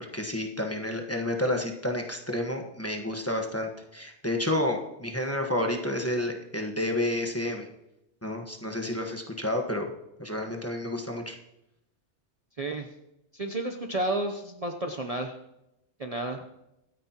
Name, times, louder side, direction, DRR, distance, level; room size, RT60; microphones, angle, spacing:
voice 1, 0.1-7.7 8.2-9.9 10.2-11.3, left 1 dB, 15° left, 2 dB, 1.3 m, -30 dB
voice 2, 12.6-12.9 13.3-15.4 16.0-16.4, right 2 dB, 35° right, 3 dB, 0.8 m, -31 dB
25.0 x 9.5 x 3.0 m, 0.88 s
omnidirectional pair, 1.2 m